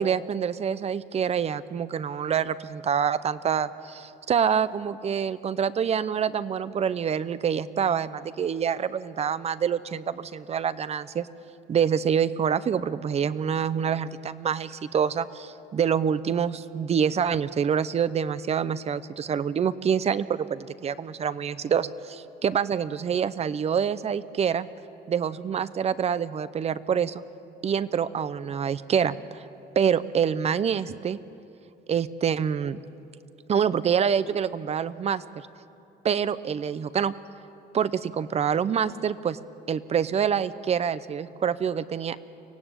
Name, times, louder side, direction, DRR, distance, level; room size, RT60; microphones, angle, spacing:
voice 1, 0.0-11.3 11.7-24.7 25.1-27.2 27.6-29.4 29.8-31.2 31.9-32.8 33.5-35.2 36.0-37.1 37.7-39.4 39.7-42.2, right 7 dB, 40° right, 15 dB, 0.7 m, -26 dB
24.5 x 17.0 x 8.8 m, 2.8 s
cardioid pair, 110°, 17 cm